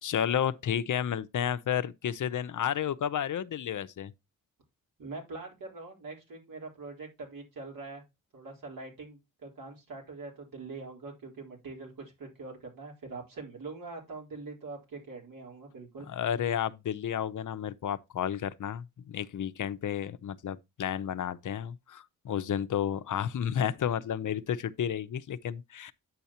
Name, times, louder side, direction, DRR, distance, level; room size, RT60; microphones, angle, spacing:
voice 1, 0.0-4.1 16.1-25.9, left 9 dB, 60° left, 0.7 m, -31 dB
voice 2, 5.0-8.0 8.3-16.1, right 3 dB, 75° right, 4.0 m, -43 dB
9.4 x 6.9 x 2.9 m
wide cardioid pair, 110°, 35 cm